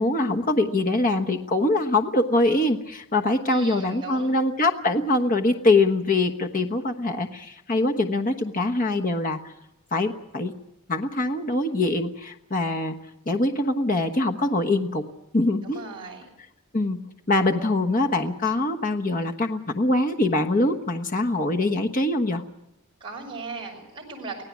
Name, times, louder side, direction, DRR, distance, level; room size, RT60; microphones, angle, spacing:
voice 1, 0.0-9.4 9.9-10.5 10.9-13.0 13.3-15.0 15.3-15.8 16.7-22.4, left 2 dB, 40° left, 4 dB, 1.2 m, -23 dB
voice 2, 3.4-4.4 15.6-16.3 23.0-24.4, right 4 dB, 25° right, -1 dB, 6.3 m, -37 dB
24.0 x 17.0 x 7.3 m, 0.88 s
head